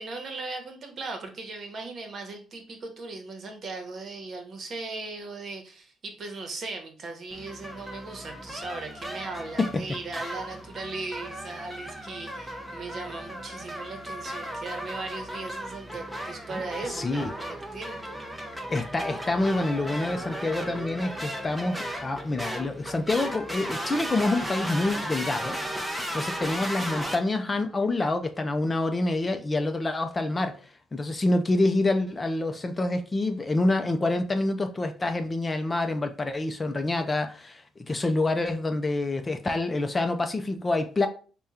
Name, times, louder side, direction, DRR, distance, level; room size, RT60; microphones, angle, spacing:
voice 1, 0.0-18.2, right 3 dB, 55° right, 1.0 m, -38 dB
sound 1, 7.3-27.2, equal, 5° right, 0.7 m, -36 dB
voice 2, 16.9-17.3 18.7-25.6 26.1-30.5 30.9-41.1, left 2 dB, 25° left, 0.5 m, -27 dB
3.5 x 2.2 x 4.1 m
cardioid pair, 90°, 0 cm